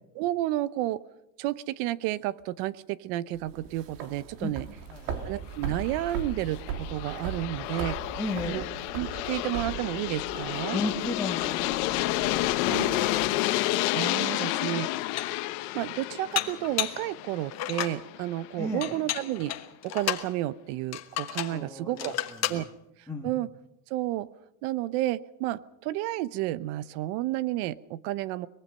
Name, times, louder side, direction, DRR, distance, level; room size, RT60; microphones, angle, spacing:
voice 1, 0.1-1.0 1.4-4.7 5.2-8.0 8.5-8.7 8.9-10.8 12.7-13.1 13.9-15.0 15.7-19.5 19.8-22.7 23.2-23.5 23.9-24.3 24.6-28.5, right 15 dB, 60° right, 17 dB, 0.9 m, -31 dB
sound 1, 3.3-13.3, right 7 dB, 85° right, 3.1 m, -39 dB
voice 2, 4.9-5.2 8.2-8.6 10.7-11.9 12.6-13.2 18.6-18.9 21.5-22.1 22.4-22.6 23.1-23.3, left 2 dB, 5° left, -3 dB, 1.6 m, -34 dB
Aircraft, 5.6-18.5, left 17 dB, 70° left, 1.2 m, -30 dB
Dishes pots and pans, 14.3-14.4 14.9-15.5 16.4-17.1 17.5-18.0 18.8-20.3 20.9-21.6 22.0-22.6, left 12 dB, 30° left, 1.2 m, -32 dB
23.0 x 21.0 x 5.5 m, 0.84 s
cardioid pair, 160°, 49 cm